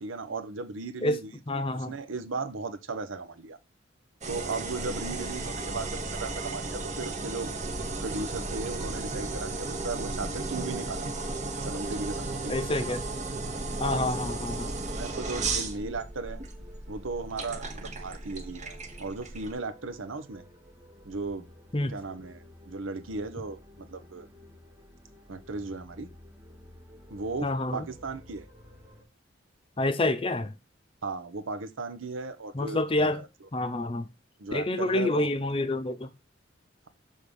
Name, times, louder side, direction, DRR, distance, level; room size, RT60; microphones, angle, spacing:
voice 1, 0.0-3.6 4.3-7.5 8.0-11.1 11.6-13.0 13.8-14.1 15.0-16.4 16.9-20.4 21.0-21.5 21.8-24.3 25.3-26.1 27.1-28.5 31.0-33.3 34.4-35.3, right 3 dB, 85° right, 0.8 m, -36 dB
voice 2, 1.5-1.9 12.5-13.0 13.8-14.7 21.7-21.9 27.4-27.9 29.8-30.5 32.5-33.2 33.5-34.1 34.5-36.1, left 2 dB, 25° left, 0.6 m, -28 dB
sound 1, 4.2-19.5, right 3 dB, 35° right, 1.0 m, -34 dB
sound 2, 12.1-29.0, left 1 dB, 15° right, 1.0 m, -52 dB
6.5 x 3.6 x 5.3 m
head